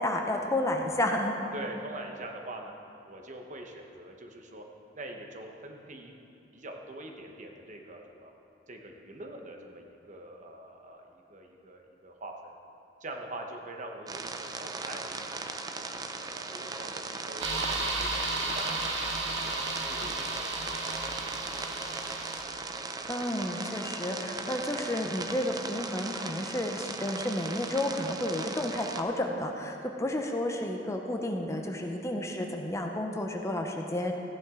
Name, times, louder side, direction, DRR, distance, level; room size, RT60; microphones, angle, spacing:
voice 1, 0.0-1.3 23.1-34.1, left 1 dB, 15° left, 2 dB, 0.7 m, -31 dB
voice 2, 1.5-2.7 3.1-4.6 4.9-6.1 6.5-8.3 8.7-12.5 13.0-18.9 19.2-19.5 19.9-21.1 24.4-24.6, right 1 dB, 45° right, 2 dB, 1.0 m, -44 dB
sound 1, 14.1-29.0, right 3 dB, 20° right, 0.5 m, -38 dB
sound 2, 17.4-22.4, right 2 dB, 75° right, 1.5 m, -33 dB
14.5 x 10.0 x 3.8 m, 2.9 s
head